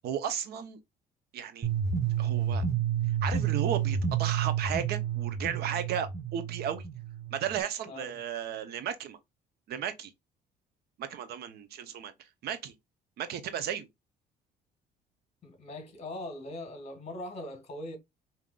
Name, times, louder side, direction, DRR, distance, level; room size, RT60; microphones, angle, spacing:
voice 1, 0.0-0.8 1.3-1.7 2.2-2.6 3.2-6.9 7.3-9.2 9.7-10.1 11.0-12.7 13.2-13.9, right 9 dB, 70° right, 0.8 m, -34 dB
sound 1, 1.6-7.6, right 8 dB, 20° right, 1.1 m, -30 dB
voice 2, 7.9-8.2 15.4-18.0, left 1 dB, 40° left, 1.8 m, -41 dB
5.2 x 2.9 x 2.4 m
cardioid pair, 110°, 17 cm